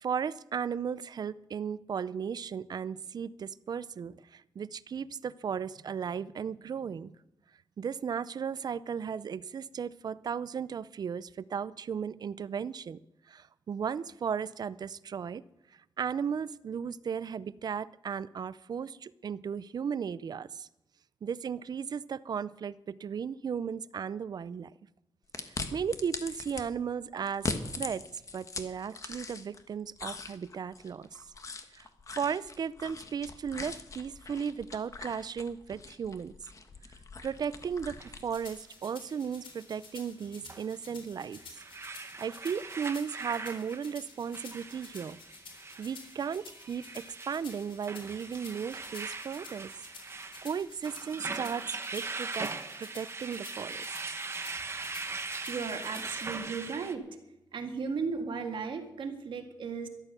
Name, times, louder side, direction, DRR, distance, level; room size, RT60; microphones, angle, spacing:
voice 1, 0.0-7.1 7.8-13.0 13.3-15.4 16.0-20.7 21.2-24.7 25.4-27.5 27.7-28.0 28.3-31.2 31.7-36.3 37.2-41.6 41.9-45.2 45.8-49.7 50.4-52.5 52.8-53.9, right 7 dB, 50° right, 18 dB, 0.5 m, -35 dB
sound 1, 25.3-26.6 27.3-29.6 30.0-38.6, left 3 dB, 40° left, 1.3 m, -41 dB
sound 2, 38.0-38.1 40.5-40.6 41.2-56.9, right 4 dB, 30° right, 1.0 m, -40 dB
sound 3, 38.3-56.4, left 4 dB, 85° left, 3.8 m, -51 dB
voice 2, 55.5-57.1 57.5-59.9, right 5 dB, 70° right, 5 dB, 1.9 m, -35 dB
13.5 x 12.0 x 6.8 m, 0.89 s
wide cardioid pair, 140°, 9 cm